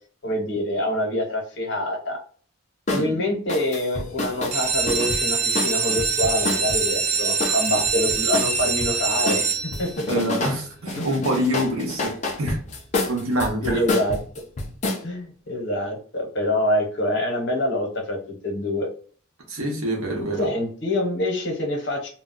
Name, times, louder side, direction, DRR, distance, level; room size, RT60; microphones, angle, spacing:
voice 1, 0.2-2.2 2.9-9.5 9.8-9.9 11.0-11.1 13.6-14.2 15.0-18.9 20.4-22.1, left 1 dB, 55° left, 0.8 m, -25 dB
sound 1, 2.9-3.1 3.5-6.8 7.4-8.9 9.3-10.6 10.9-15.0, left 2 dB, 35° left, 0.5 m, -28 dB
sound 2, 4.4-10.1 10.7-11.2 11.6-11.7 12.0-12.1 12.5-12.6, right 5 dB, 30° right, 0.4 m, -24 dB
voice 2, 10.1-12.6 13.1-13.8 19.5-20.5, right 1 dB, 85° right, 0.8 m, -26 dB
2.2 x 2.0 x 3.8 m
head